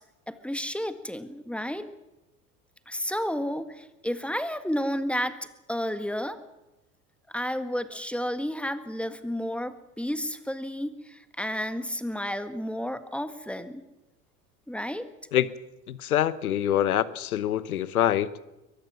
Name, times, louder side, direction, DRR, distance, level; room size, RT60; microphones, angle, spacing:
voice 1, 0.3-1.9 2.9-5.4 5.7-6.4 7.3-13.8 14.7-15.0, equal, 5° left, 11 dB, 1.6 m, -31 dB
voice 2, 15.9-18.4, left 11 dB, 80° left, 18 dB, 1.0 m, -25 dB
23.0 x 19.5 x 6.1 m, 0.99 s
figure-of-eight pair, 75°, 43 cm